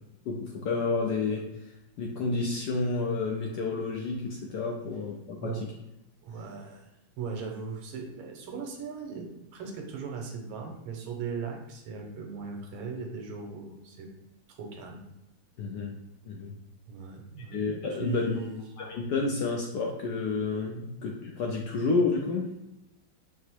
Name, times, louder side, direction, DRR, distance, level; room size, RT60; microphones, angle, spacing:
voice 1, 0.3-1.4 2.0-5.7 15.6-15.9 16.3-16.5 17.5-18.3 18.8-22.5, left 3 dB, 75° left, 0 dB, 1.0 m, -30 dB
voice 2, 6.2-6.9 7.2-14.1 14.6-15.0 16.9-17.6 17.9-18.6, right 5 dB, 90° right, 2 dB, 1.6 m, -38 dB
4.9 x 2.0 x 4.4 m, 0.92 s
omnidirectional pair, 2.2 m